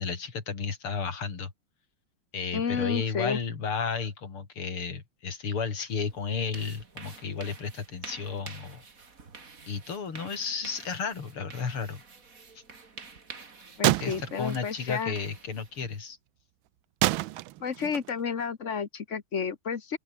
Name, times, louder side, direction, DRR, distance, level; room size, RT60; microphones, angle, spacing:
voice 1, 0.0-1.5 2.3-8.8 9.7-12.0 14.0-16.2, left 5 dB, 75° left, 4.0 m, -33 dB
voice 2, 2.5-3.4 13.8-15.1 17.6-20.0, left 6 dB, 40° left, 1.5 m, -31 dB
sound 1, 5.9-16.1, right 4 dB, 40° right, 2.8 m, -49 dB
sound 2, 13.8-14.9 15.2-15.3 17.0-18.2, right 16 dB, 75° right, 1.3 m, -27 dB
open air
omnidirectional pair, 2.4 m